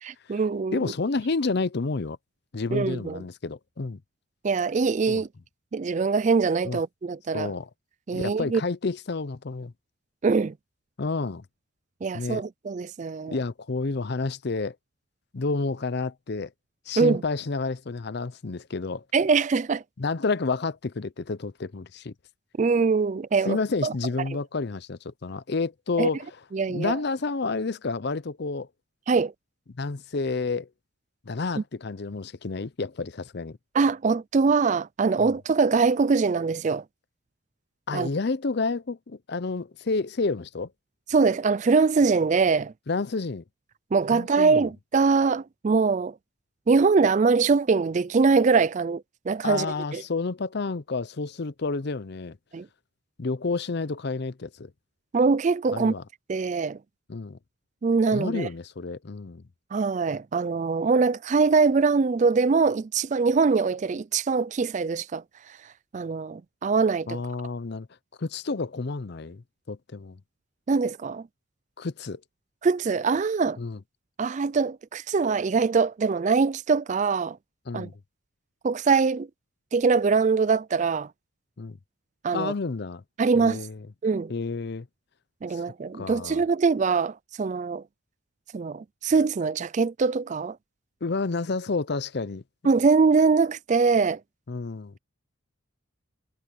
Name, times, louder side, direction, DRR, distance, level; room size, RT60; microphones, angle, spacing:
voice 1, 0.0-0.9 2.7-3.2 4.4-5.3 5.7-7.5 8.1-8.6 10.2-10.5 12.0-13.4 17.0-17.2 19.1-19.8 22.6-23.6 23.8-23.9 26.0-26.1 26.5-26.9 29.1-29.3 33.7-36.8 37.9-38.1 41.1-42.7 43.9-46.1 46.7-49.7 49.9-50.0 52.5-52.7 55.1-55.9 56.3-56.8 57.8-58.5 59.7-65.2 65.9-67.2 70.7-71.2 72.6-73.6 74.2-77.4 77.7-77.9 78.6-79.3 79.7-81.1 82.2-82.5 83.2-83.6 84.0-84.3 85.4-87.8 88.5-90.6 92.6-94.2, right 4 dB, 35° right, 0.3 m, -23 dB
voice 2, 0.7-2.2 2.5-4.0 5.1-5.2 6.6-6.8 7.3-7.7 8.1-9.7 11.0-11.4 12.1-12.4 13.3-14.8 15.3-16.5 16.9-19.0 20.0-22.1 23.5-26.4 26.7-28.7 29.8-30.7 31.3-33.6 35.2-35.3 37.9-40.7 42.9-43.4 44.1-44.6 49.4-52.4 53.2-54.7 55.7-56.0 57.1-57.4 58.1-59.4 67.1-67.9 68.2-70.2 71.8-72.2 73.6-73.8 77.7-77.9 81.6-81.8 82.3-83.0 83.3-83.8 84.3-84.9 85.5-85.6 86.0-86.4 91.0-92.4 94.5-94.9, left 3 dB, 50° left, 0.6 m, -30 dB
head